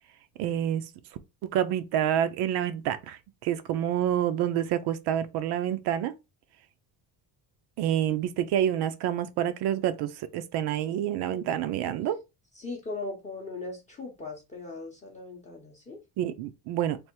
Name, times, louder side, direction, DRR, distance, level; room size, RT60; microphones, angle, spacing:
voice 1, 0.4-0.9 1.4-6.1 7.8-12.2 16.2-17.0, right 10 dB, 70° right, 0.6 m, -28 dB
voice 2, 12.5-16.0, left 3 dB, 15° left, 0.6 m, -39 dB
3.4 x 2.5 x 4.4 m
cardioid pair, 180°, 41 cm